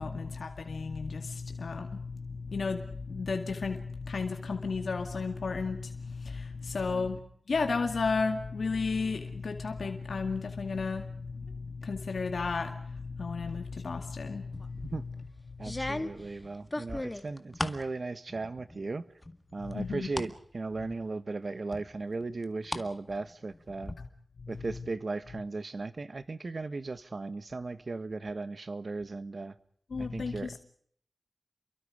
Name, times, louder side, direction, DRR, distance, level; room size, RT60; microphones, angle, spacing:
voice 1, 0.0-7.2 7.5-14.9 15.6-16.0 19.7-20.1 24.0-24.1 24.4-24.5 29.9-30.6, left 4 dB, 80° left, 2.2 m, -33 dB
sound 1, 14.5-15.0 15.6-17.9 18.3-18.9 19.2-20.3 20.8-20.9 21.7-22.9 23.2-23.9, left 1 dB, 20° left, 1.9 m, -37 dB
voice 2, 15.6-19.1 19.5-23.9 24.5-29.5 30.0-30.6, right 3 dB, 55° right, 1.5 m, -37 dB
30.0 x 23.5 x 5.1 m
wide cardioid pair, 95°, 0 cm